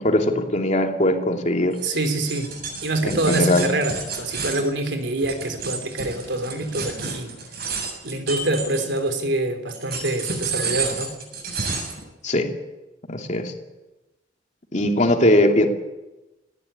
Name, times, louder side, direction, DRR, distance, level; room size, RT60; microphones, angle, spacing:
voice 1, 0.0-1.8 3.0-3.7 12.2-12.5 13.1-13.5 14.7-15.7, left 1 dB, 40° left, 3 dB, 2.8 m, -20 dB
sound 1, 1.7-9.2 9.7-12.0, right 4 dB, 60° right, 7.1 m, -31 dB
voice 2, 1.8-2.5 2.8-7.4 8.0-11.2, right 2 dB, 75° right, 7 dB, 3.3 m, -25 dB
19.5 x 16.0 x 10.0 m, 1.0 s
head